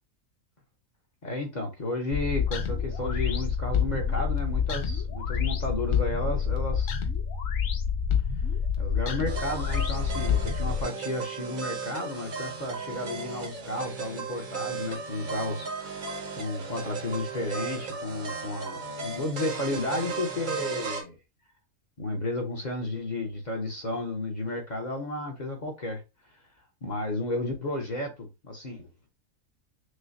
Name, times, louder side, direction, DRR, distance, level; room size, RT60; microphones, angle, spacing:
voice 1, 1.2-6.9 8.8-15.9 16.4-21.2 22.0-26.0 26.8-28.9, left 2 dB, 35° left, 0.8 m, -33 dB
sound 1, 2.1-10.8, left 7 dB, 70° left, 1.1 m, -28 dB
sound 2, 9.3-21.0, right 5 dB, 45° right, 0.8 m, -36 dB
6.3 x 2.2 x 2.6 m
omnidirectional pair, 1.5 m